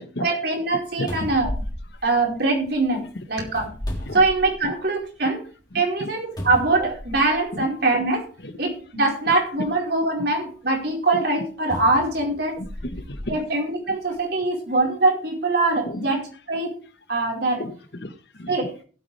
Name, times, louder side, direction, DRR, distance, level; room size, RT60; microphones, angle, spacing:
voice 1, 0.2-1.5 2.0-3.7 4.1-5.4 5.7-8.2 8.6-12.6 13.3-16.7 17.1-17.6 18.5-18.7, right 2 dB, 55° right, 0 dB, 4.7 m, -23 dB
sound 1, 0.7-0.8 1.1-2.8 3.5-4.9 5.3-5.4 6.4-7.5 8.4-8.5 11.7-13.4 14.0-14.2, left 1 dB, 20° left, 3.4 m, -34 dB
voice 2, 1.0-1.3 4.1-4.2 5.7-6.1 7.5-7.6 8.4-8.5 11.1-11.2 12.6-13.4 15.9-16.0 17.6-18.6, left 1 dB, 60° left, 10 dB, 1.4 m, -33 dB
16.5 x 8.5 x 3.4 m, 0.38 s
head